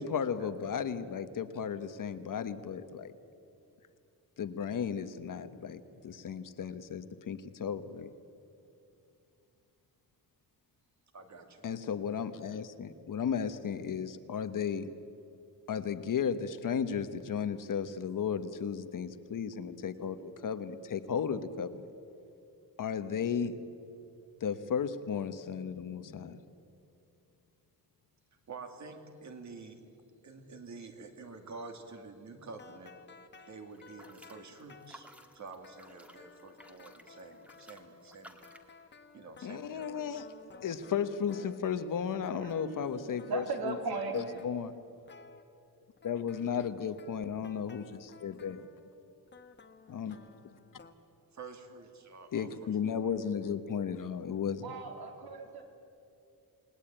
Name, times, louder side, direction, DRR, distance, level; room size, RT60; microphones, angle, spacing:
voice 1, 0.0-3.1 4.4-8.1 11.6-14.9 15.7-21.9 22.8-23.6 24.4-26.4 39.4-40.2 40.6-43.8 44.1-44.7 46.0-48.7 49.9-50.2 52.3-54.7, left 7 dB, 60° left, 11 dB, 1.2 m, -34 dB
voice 2, 11.1-11.7 28.5-29.8 30.2-32.9 33.5-35.1 35.3-38.4 39.1-40.2 51.3-53.1, right 4 dB, 50° right, 6 dB, 2.6 m, -48 dB
sound 1, 32.5-41.9 42.2-43.7 44.1-45.4 46.0-50.9, left 5 dB, 30° left, 1.3 m, -56 dB
sound 2, 33.7-38.7, equal, 5° right, 1.7 m, -56 dB
voice 3, 42.4-44.4 54.6-55.6, right 4 dB, 80° right, 3 dB, 3.6 m, -38 dB
28.5 x 20.0 x 9.0 m, 2.6 s
wide cardioid pair, 175°, 37 cm